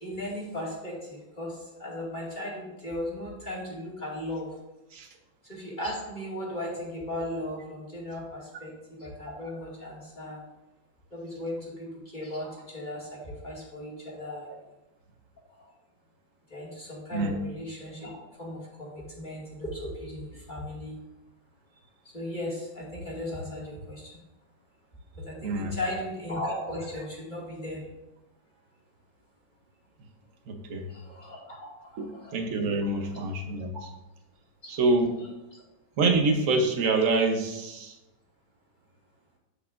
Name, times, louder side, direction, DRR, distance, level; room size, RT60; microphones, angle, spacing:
voice 1, 0.0-1.5 1.8-4.5 5.5-10.4 11.1-14.5 16.5-18.1 18.4-21.0 22.1-24.1 25.2-27.8 30.9-31.6 31.9-32.4 33.0-33.2, left 1 dB, 25° left, -6 dB, 2.2 m, -36 dB
voice 2, 25.4-25.8 30.5-30.8 32.0-33.7 34.7-35.1 36.0-37.9, right 3 dB, 50° right, 4 dB, 1.1 m, -26 dB
8.3 x 8.2 x 2.5 m, 0.96 s
omnidirectional pair, 2.2 m